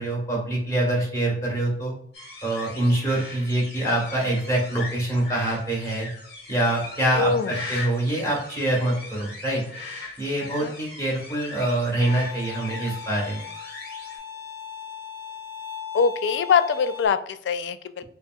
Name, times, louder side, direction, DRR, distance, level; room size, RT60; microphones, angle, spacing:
voice 1, 0.0-1.9 2.4-6.1 6.5-9.6 10.2-13.4, right 1 dB, 20° left, -2 dB, 1.3 m, -25 dB
sound 1, 2.1-14.2, left 2 dB, 65° left, 1.7 m, -40 dB
voice 2, 7.1-7.5 10.4-10.7 15.9-18.0, left 6 dB, 90° left, 12 dB, 0.3 m, -23 dB
Bowed string instrument, 12.0-17.1, left 7 dB, 20° right, 0.7 m, -38 dB
6.3 x 2.4 x 2.4 m, 0.65 s
head